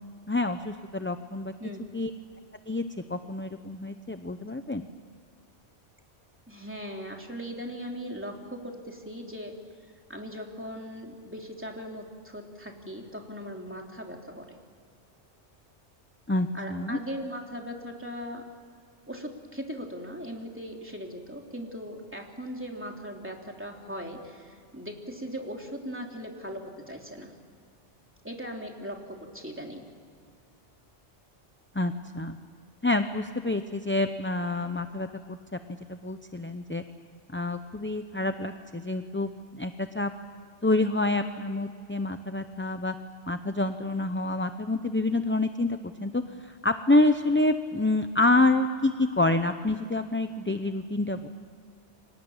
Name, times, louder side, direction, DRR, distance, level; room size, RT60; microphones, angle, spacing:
voice 1, 0.3-1.5 1.9-2.1 2.7-2.8 3.1-4.8 16.3-17.0 31.7-32.4 32.8-35.4 35.9-36.8 37.3-40.1 40.6-42.9 43.3-51.3, left 2 dB, 10° left, 8 dB, 0.6 m, -27 dB
voice 2, 6.5-9.5 10.1-14.5 16.5-18.4 19.1-27.3 28.2-29.9, equal, 10° right, 1 dB, 3.1 m, -39 dB
29.5 x 25.5 x 7.3 m, 2.3 s
omnidirectional pair, 1.2 m